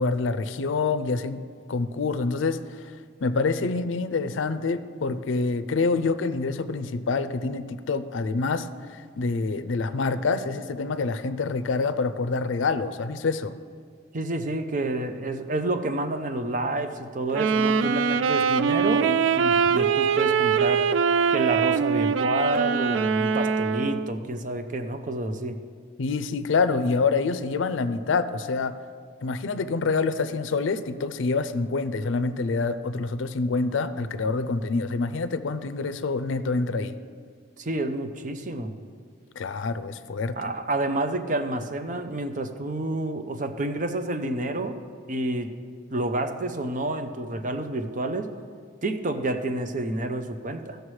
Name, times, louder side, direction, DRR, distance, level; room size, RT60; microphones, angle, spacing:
voice 1, 0.0-1.4 1.7-2.9 3.2-13.5 26.0-28.8 29.2-37.0 39.4-40.5, left 4 dB, 85° left, 12 dB, 0.5 m, -26 dB
voice 2, 14.1-20.9 21.3-25.6 37.6-38.7 40.4-44.8 45.1-45.5 45.9-48.3 48.8-50.8, right 2 dB, 40° right, 7 dB, 0.6 m, -29 dB
Wind instrument woodwind instrument, 17.3-24.2, right 6 dB, 80° right, 0.3 m, -23 dB
16.5 x 6.5 x 3.2 m, 2.1 s
head